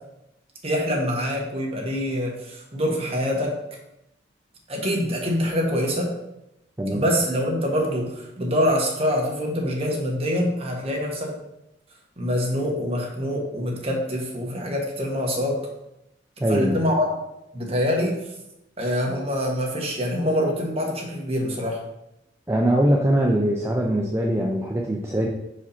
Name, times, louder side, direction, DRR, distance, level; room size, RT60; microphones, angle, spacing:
voice 1, 0.6-3.5 4.7-6.1 6.9-11.3 12.2-15.6 16.5-17.0 17.5-18.1 18.8-21.8, equal, 30° right, -1 dB, 1.4 m, -25 dB
voice 2, 16.4-16.8 22.5-25.3, right 1 dB, 15° right, -1 dB, 0.5 m, -22 dB
5.5 x 5.0 x 4.3 m, 0.88 s
head